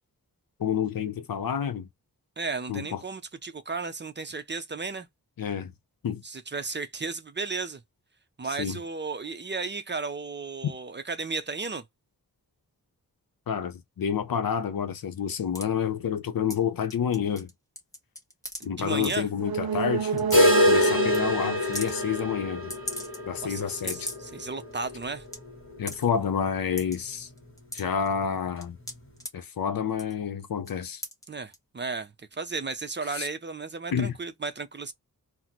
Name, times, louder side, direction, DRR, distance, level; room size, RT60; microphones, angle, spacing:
voice 1, 0.6-1.9 2.7-3.0 5.4-5.7 6.0-6.2 8.6-8.8 10.6-10.7 13.5-17.5 18.6-22.7 23.3-24.1 25.8-27.3 27.7-28.8 29.3-31.0 33.1-33.3 33.9-34.1, left 7 dB, 70° left, 0.7 m, -29 dB
voice 2, 2.4-5.1 6.2-7.8 8.4-11.8 18.6-19.3 23.4-25.2 31.3-34.9, right 4 dB, 30° right, 0.5 m, -34 dB
sound 1, 15.5-15.7 16.5-16.6 16.9-17.5 17.8-18.6 19.0-19.2 19.8-19.9 20.2-20.3 20.7-20.9 21.1-21.2 21.6-21.9 22.7-23.4 23.7-24.3 24.7-24.8 25.0-25.4 25.9-26.1 26.8-27.0 27.4-28.1 28.6-29.3 29.9-30.2 30.6-30.7 31.0-31.2 31.5-31.6, left 1 dB, 10° left, 1.1 m, -37 dB
sound 2, 19.3-23.0 23.4-23.5, right 7 dB, 75° right, 0.6 m, -29 dB
sound 3, 20.3-26.1 26.4-26.5 26.9-27.0 27.5-27.6 28.4-28.5, left 2 dB, 35° left, 1.1 m, -26 dB
4.0 x 2.0 x 2.9 m
wide cardioid pair, 125°, 37 cm